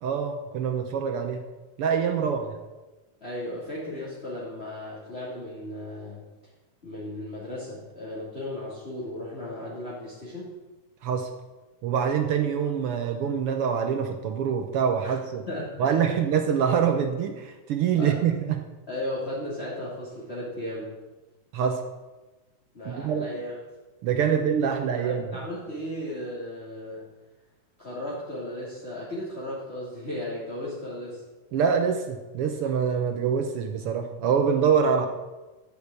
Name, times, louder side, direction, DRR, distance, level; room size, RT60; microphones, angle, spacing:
voice 1, 0.0-1.4 1.8-2.4 11.0-11.3 11.8-15.4 15.8-18.6 21.5-21.8 22.8-23.3 24.0-25.4 31.5-35.1, right 7 dB, 75° right, 6 dB, 1.3 m, -25 dB
voice 2, 3.2-6.3 6.8-10.5 15.0-15.1 15.5-16.1 18.0-18.2 18.9-20.9 22.7-23.5 24.3-24.5 24.9-27.1 27.8-31.2, left 1 dB, 20° left, -7 dB, 2.8 m, -35 dB
13.5 x 6.7 x 8.3 m, 1.2 s
omnidirectional pair, 3.6 m